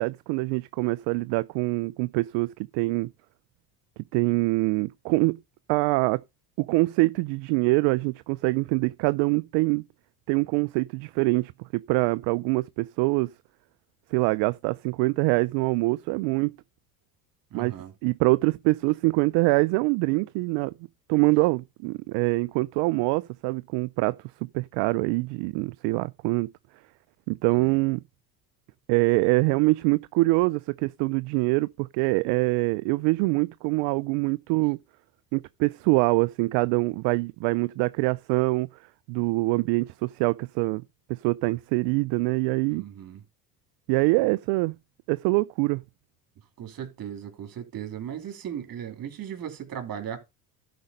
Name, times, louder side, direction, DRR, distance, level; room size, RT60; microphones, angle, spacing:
voice 1, 0.0-3.1 4.1-5.4 5.7-6.2 6.6-9.8 10.3-13.3 14.1-16.5 17.5-17.7 18.0-20.7 21.1-24.2 24.5-26.5 27.3-28.0 28.9-34.8 35.3-38.7 39.1-40.8 41.1-42.8 43.9-44.7 45.1-45.8, right 24 dB, 65° right, 0.5 m, -24 dB
voice 2, 17.5-17.9 27.5-27.8 42.7-43.2 46.6-50.2, right 9 dB, 45° right, 2.9 m, -37 dB
11.5 x 5.1 x 5.3 m
hypercardioid pair, 80°, 47 cm